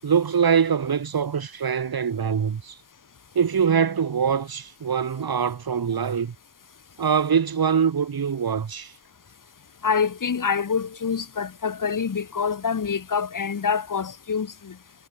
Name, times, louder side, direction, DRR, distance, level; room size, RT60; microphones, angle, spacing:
voice 1, 0.0-2.8 3.4-6.4 7.0-8.9, right 7 dB, 85° right, 7.0 m, -23 dB
voice 2, 9.8-14.8, left 6 dB, 60° left, 5.2 m, -26 dB
wide cardioid pair, 170°, 35 cm